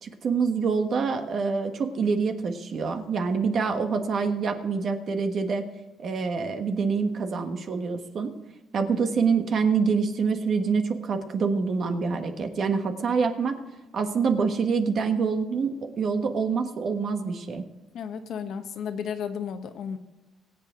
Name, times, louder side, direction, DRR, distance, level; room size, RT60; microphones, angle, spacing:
voice 1, 0.0-5.7 6.0-8.4 8.7-13.6 13.9-17.6, right 5 dB, 45° right, 6 dB, 1.4 m, -26 dB
voice 2, 17.9-20.0, left 7 dB, 60° left, 7 dB, 1.2 m, -33 dB
22.0 x 8.0 x 3.8 m, 1.1 s
cardioid pair, 130°, 0 cm